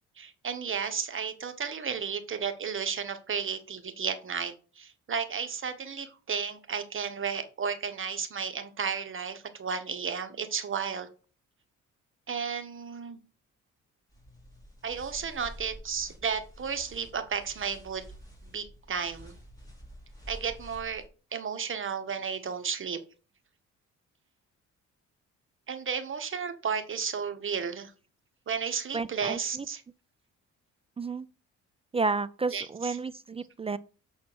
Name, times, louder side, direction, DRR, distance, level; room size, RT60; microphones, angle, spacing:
voice 1, 0.2-11.1 12.3-13.2 14.8-18.0 18.5-19.4 20.3-21.0 21.3-23.0 25.7-27.9 28.5-29.8 32.5-33.0, right 6 dB, 40° right, 1.2 m, -33 dB
sound 1, 14.1-21.1, equal, 10° left, 3.8 m, -49 dB
voice 2, 28.9-29.6 31.0-31.3 31.9-33.8, right 4 dB, 20° right, 0.4 m, -31 dB
7.2 x 4.3 x 6.0 m
cardioid pair, 90°, 30 cm